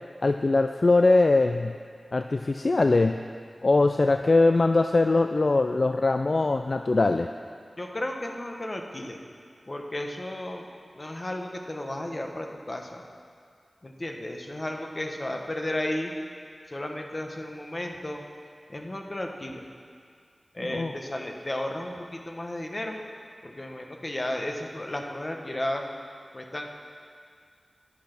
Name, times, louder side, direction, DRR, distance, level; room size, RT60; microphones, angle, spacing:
voice 1, 0.2-1.7 2.1-3.2 3.6-7.3 20.6-20.9, left 3 dB, 55° left, 7 dB, 0.3 m, -22 dB
voice 2, 7.8-9.2 9.7-10.7 10.9-13.0 13.8-16.1 16.7-18.2 18.7-19.6 20.5-23.0 23.4-25.8 26.3-26.6, left 1 dB, 35° left, 3 dB, 1.2 m, -33 dB
10.5 x 8.4 x 6.0 m, 2.2 s
wide cardioid pair, 55°, 0 cm